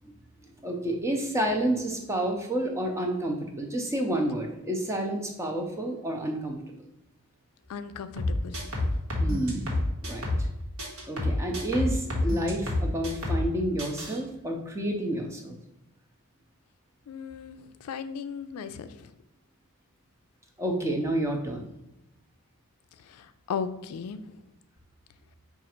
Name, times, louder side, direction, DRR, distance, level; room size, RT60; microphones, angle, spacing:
voice 1, 0.6-6.7 9.2-9.6 10.0-10.3 11.0-15.6 20.6-21.7, right 1 dB, 15° right, 2 dB, 0.5 m, -29 dB
voice 2, 7.7-8.6 17.1-19.1 23.1-24.2, left 6 dB, 85° left, 11 dB, 0.3 m, -36 dB
sound 1, 8.2-10.5 10.8-13.5 13.8-14.2, left 1 dB, 75° right, 1.2 m, -28 dB
5.1 x 2.4 x 4.3 m, 0.87 s
head